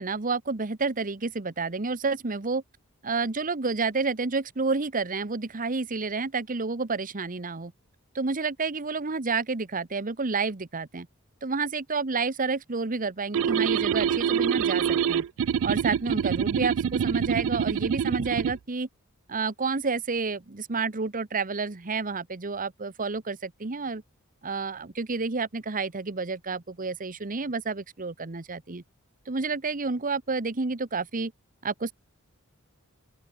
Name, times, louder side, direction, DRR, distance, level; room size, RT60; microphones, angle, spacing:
voice 1, 0.0-2.6 3.0-7.7 8.1-11.1 11.4-15.2 15.6-18.9 19.3-24.0 24.4-28.8 29.3-31.3 31.6-31.9, right 4 dB, 40° right, 1.1 m, -30 dB
sound 1, 13.3-18.6, right 8 dB, 65° right, 0.3 m, -25 dB
open air
head